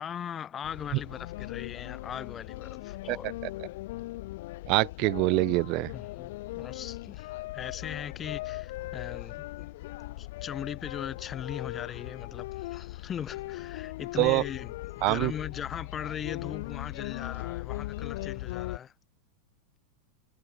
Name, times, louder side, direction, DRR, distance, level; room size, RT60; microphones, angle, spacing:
voice 1, 0.0-3.3 5.9-9.7 10.2-18.9, left 8 dB, 25° left, 3.7 m, -39 dB
sound 1, 0.6-18.8, left 18 dB, 50° left, 1.0 m, -39 dB
voice 2, 4.7-5.9 14.2-14.4 15.0-15.3, right 26 dB, 40° right, 0.6 m, -25 dB
figure-of-eight pair, 90°, 0 cm